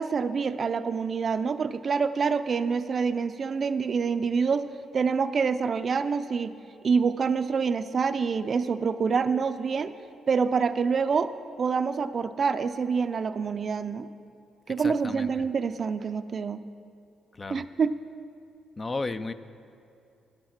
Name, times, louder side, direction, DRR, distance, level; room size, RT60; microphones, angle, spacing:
voice 1, 0.0-4.7 4.9-6.5 6.8-9.9 10.3-11.3 11.6-14.1 14.7-16.6 17.5-18.0, right 5 dB, 45° right, 12 dB, 0.4 m, -26 dB
voice 2, 14.8-15.3 17.4-17.6 18.8-19.3, left 3 dB, 30° left, 12 dB, 0.4 m, -33 dB
10.0 x 8.8 x 5.8 m, 2.5 s
cardioid pair, 90°, 0 cm